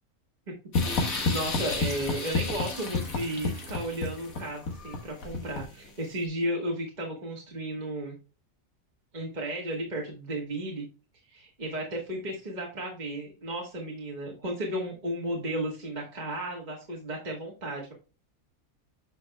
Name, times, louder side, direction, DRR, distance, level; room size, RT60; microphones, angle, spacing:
sound 1, 0.7-5.9, left 3 dB, 85° left, 2.0 m, -30 dB
voice 1, 0.8-8.1 9.1-10.8 11.3-17.9, right 1 dB, 35° right, -1 dB, 1.8 m, -34 dB
9.4 x 5.6 x 2.2 m, 0.33 s
omnidirectional pair, 1.4 m